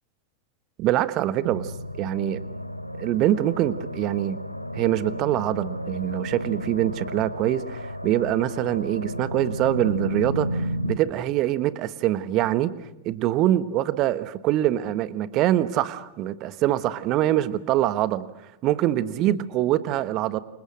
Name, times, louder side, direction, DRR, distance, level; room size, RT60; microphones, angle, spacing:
voice 1, 0.8-1.7 2.0-2.4 3.0-4.4 4.7-12.7 13.0-18.2 18.6-20.4, right 13 dB, 40° right, 15 dB, 1.3 m, -24 dB
sound 1, 1.4-11.0, equal, 90° left, 1.2 m, -32 dB
29.0 x 27.5 x 6.4 m, 0.93 s
figure-of-eight pair, 90°, 0 cm